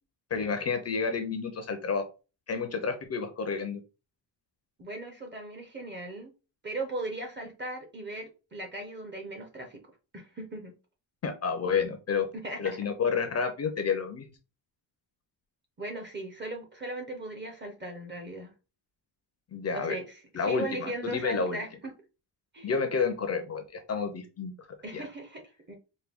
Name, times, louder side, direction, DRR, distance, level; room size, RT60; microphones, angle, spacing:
voice 1, 0.3-2.1 2.5-3.8 11.2-12.3 12.6-14.3 19.5-20.0 20.3-21.6 22.6-24.5 24.9-25.0, left 5 dB, 35° left, 6 dB, 0.5 m, -30 dB
voice 2, 4.8-6.3 6.6-9.8 10.1-10.7 12.3-12.6 15.8-18.5 19.7-21.7 22.5-22.7 24.8-25.4 25.7-25.8, right 2 dB, 25° right, 3 dB, 0.6 m, -38 dB
4.5 x 2.2 x 3.4 m, 0.31 s
cardioid pair, 175°, 46 cm